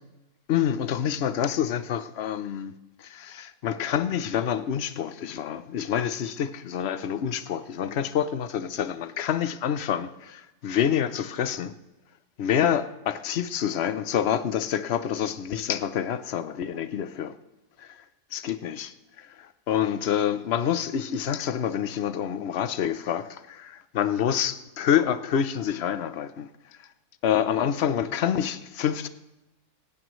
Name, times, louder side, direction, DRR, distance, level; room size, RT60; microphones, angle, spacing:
voice 1, 0.5-2.7 3.0-11.7 12.4-17.3 17.8-18.0 18.3-26.5 27.2-29.1, left 9 dB, 55° left, 0.8 m, -27 dB
18.5 x 15.5 x 3.2 m
omnidirectional pair, 1.8 m